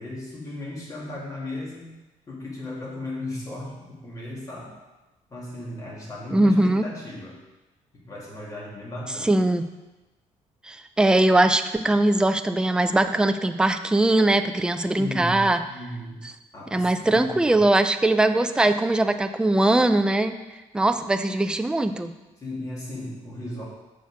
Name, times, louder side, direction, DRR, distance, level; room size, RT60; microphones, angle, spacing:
voice 1, 0.0-1.9 2.3-4.8 5.3-7.4 7.9-9.4 14.9-16.2 16.5-17.6 22.4-23.6, left 1 dB, 25° left, -4 dB, 2.2 m, -36 dB
voice 2, 6.3-6.8 9.2-9.6 10.7-15.6 16.7-20.4 20.7-22.1, right 2 dB, 5° right, 8 dB, 0.3 m, -21 dB
7.1 x 6.2 x 4.7 m, 1.1 s
cardioid pair, 165°, 13 cm